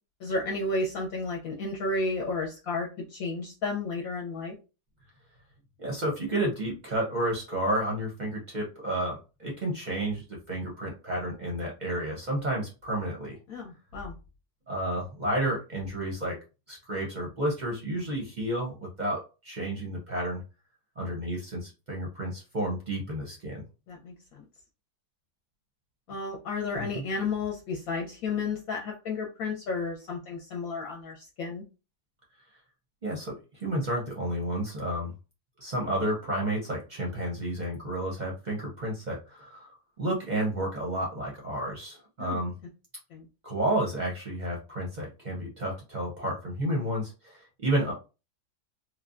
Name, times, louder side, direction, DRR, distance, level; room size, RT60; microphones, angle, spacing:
voice 1, 0.2-4.5 13.5-14.1 23.9-24.4 26.1-31.6 42.2-42.4 43.1-43.3, left 3 dB, 70° left, -1 dB, 1.0 m, -32 dB
voice 2, 5.8-13.4 14.7-16.4 16.7-20.4 21.0-23.6 26.8-27.0 33.0-35.1 35.6-42.5 43.4-47.9, right 1 dB, 45° right, -2 dB, 0.5 m, -31 dB
3.2 x 2.1 x 2.4 m, 0.30 s
omnidirectional pair, 1.7 m